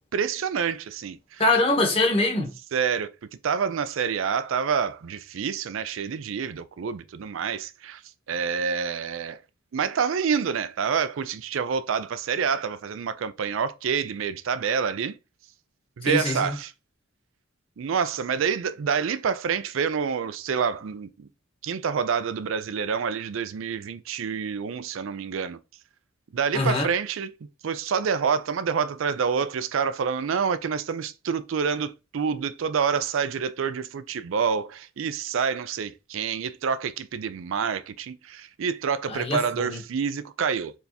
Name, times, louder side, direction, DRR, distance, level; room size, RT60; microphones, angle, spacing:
voice 1, 0.1-1.4 2.7-3.1 3.4-8.0 8.3-9.4 9.7-15.2 16.0-16.7 17.8-21.3 21.6-25.6 26.3-27.3 27.6-40.7, right 6 dB, 65° right, 0.4 m, -27 dB
voice 2, 1.4-2.5 16.0-16.5 26.5-26.9 39.1-39.8, left 2 dB, 25° left, 1.3 m, -23 dB
4.5 x 3.3 x 2.8 m
head